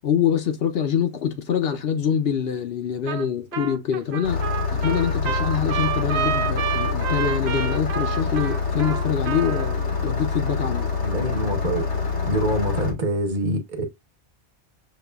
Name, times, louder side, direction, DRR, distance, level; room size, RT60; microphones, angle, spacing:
voice 1, 0.0-4.4 4.7-10.9, left 8 dB, 65° left, 0.8 m, -25 dB
Trumpet, 3.1-3.3 3.5-9.7, right 8 dB, 70° right, 0.9 m, -29 dB
Engine starting, 4.2-12.9, left 5 dB, 85° left, 1.4 m, -26 dB
voice 2, 11.0-11.8 12.3-13.8, right 1 dB, 45° right, 1.0 m, -25 dB
6.6 x 2.3 x 2.2 m
omnidirectional pair, 1.2 m